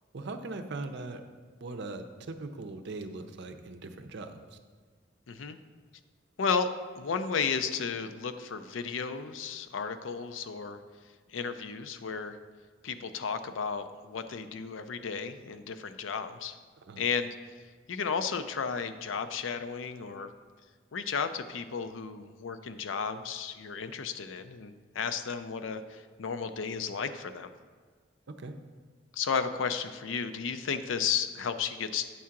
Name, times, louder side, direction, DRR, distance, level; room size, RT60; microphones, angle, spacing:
voice 1, 0.1-1.2 1.6-4.6 16.8-17.0 28.4-28.5, right 3 dB, 60° right, 7 dB, 0.6 m, -40 dB
voice 2, 5.3-5.6 6.4-6.7 7.0-10.8 11.3-12.4 12.8-16.6 17.0-17.3 17.9-20.3 20.9-27.5 29.1-32.1, left 6 dB, 80° left, 10 dB, 0.5 m, -33 dB
8.5 x 3.7 x 5.8 m, 1.5 s
head